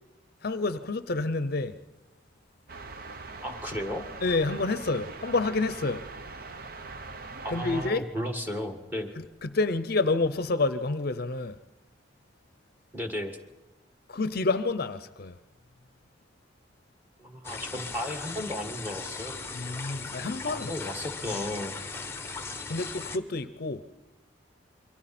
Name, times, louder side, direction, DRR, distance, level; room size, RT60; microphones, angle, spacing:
voice 1, 0.4-1.7 4.2-6.0 7.5-8.1 9.2-11.6 14.1-15.4 19.5-20.7 22.7-23.8, left 3 dB, 55° left, 0.6 m, -28 dB
sound 1, 2.7-7.9, right 3 dB, 50° right, 0.9 m, -41 dB
voice 2, 3.4-4.1 7.4-9.1 12.9-13.4 17.2-19.4 20.5-21.7, left 1 dB, 10° right, 1.7 m, -34 dB
sound 2, 17.4-23.2, left 4 dB, 15° left, 0.9 m, -38 dB
27.5 x 23.5 x 4.3 m
head